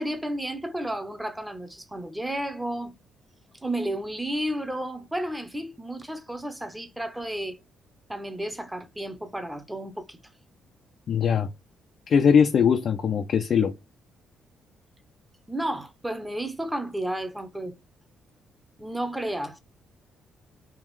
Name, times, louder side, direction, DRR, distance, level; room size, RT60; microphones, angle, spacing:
voice 1, 0.0-2.9 3.6-7.6 8.1-10.2 15.5-17.8 18.8-19.6, right 1 dB, 10° right, 0.8 m, -32 dB
voice 2, 11.1-11.5 12.1-13.7, left 7 dB, 55° left, 0.4 m, -21 dB
3.6 x 2.4 x 3.1 m
cardioid pair, 90°, 0 cm